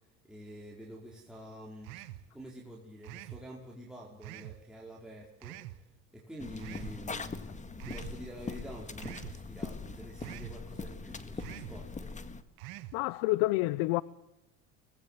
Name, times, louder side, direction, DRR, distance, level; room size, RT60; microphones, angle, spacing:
voice 1, 0.2-1.9 2.3-5.6 6.1-7.3 7.8-12.1, equal, ahead, 4.8 m, -47 dB
sound 1, 1.8-2.3 3.0-3.4 4.2-4.6 5.4-5.8 6.6-7.0 7.8-8.2 9.0-9.4 10.2-10.6 11.4-11.8 12.6-13.0, right 17 dB, 70° right, 1.5 m, -45 dB
sound 2, 6.4-12.4, left 4 dB, 20° left, 1.9 m, -42 dB
voice 2, 12.9-14.0, left 20 dB, 75° left, 0.8 m, -28 dB
24.5 x 20.0 x 7.6 m
supercardioid pair, 95°, 38 cm